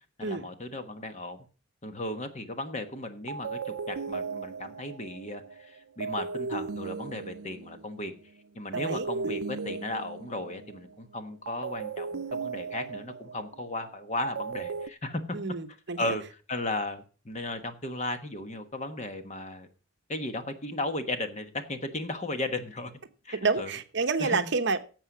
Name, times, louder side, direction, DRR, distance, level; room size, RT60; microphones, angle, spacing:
voice 1, 0.2-1.4 1.8-8.1 8.5-15.4 16.0-19.7 20.1-22.9 23.2-23.7 24.2-24.5, left 2 dB, 35° left, 1.2 m, -35 dB
sound 1, 2.8-3.0 3.3-8.2 8.7-10.9 11.5-14.9, right 4 dB, 85° right, 0.5 m, -36 dB
voice 2, 8.7-9.1 15.3-16.2 23.4-24.8, right 4 dB, 55° right, 1.0 m, -29 dB
11.5 x 7.6 x 6.1 m
head